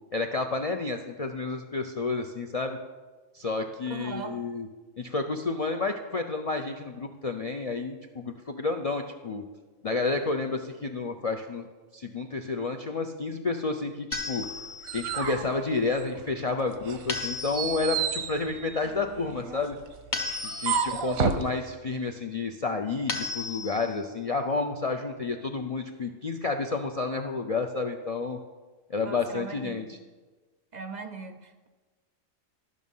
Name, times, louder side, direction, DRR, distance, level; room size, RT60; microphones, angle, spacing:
voice 1, 0.1-2.8 3.3-4.7 5.0-9.4 9.8-11.7 11.9-14.5 14.9-19.8 20.4-28.4 28.9-30.0, left 3 dB, 65° left, 3 dB, 0.3 m, -30 dB
voice 2, 3.9-4.4 29.0-30.0 30.7-31.7, right 5 dB, 50° right, 8 dB, 0.5 m, -39 dB
sound 1, 14.1-15.0 17.1-18.0 20.1-21.0 23.1-24.0, left 3 dB, 40° left, 1.0 m, -34 dB
sound 2, 14.4-16.4 16.8-21.5, right 7 dB, 90° right, 1.2 m, -32 dB
12.5 x 6.3 x 5.4 m, 1.3 s
omnidirectional pair, 1.4 m